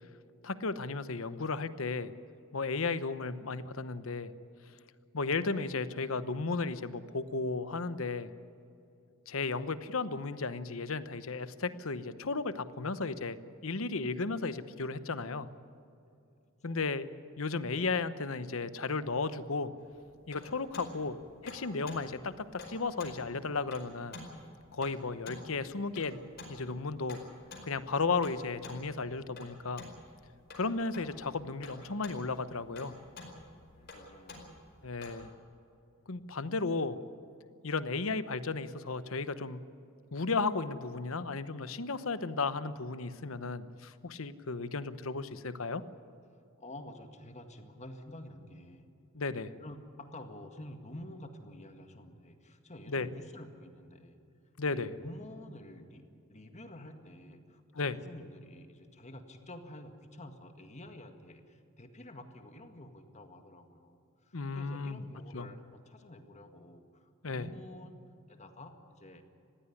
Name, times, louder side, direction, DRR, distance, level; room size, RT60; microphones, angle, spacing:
voice 1, 0.4-2.1 2.5-4.3 5.1-8.3 9.3-13.4 13.6-15.5 16.6-17.1 17.4-19.7 20.3-24.2 24.7-26.2 26.5-27.2 27.6-29.8 30.5-32.9 34.8-35.3 36.1-37.0 37.6-39.6 40.1-45.8 49.1-49.5 52.9-53.1 54.6-54.9 57.7-58.0 64.3-65.0 65.3-65.5 67.2-67.5, left 4 dB, 70° left, 13 dB, 1.0 m, -34 dB
sound 1, 19.8-35.3, left 2 dB, 50° left, 4.8 m, -50 dB
voice 2, 33.8-34.5 46.6-48.9 49.6-54.2 54.7-56.0 56.3-68.0 68.3-69.2, left 1 dB, 35° left, 6 dB, 1.8 m, -49 dB
20.0 x 16.0 x 9.9 m, 2.6 s
head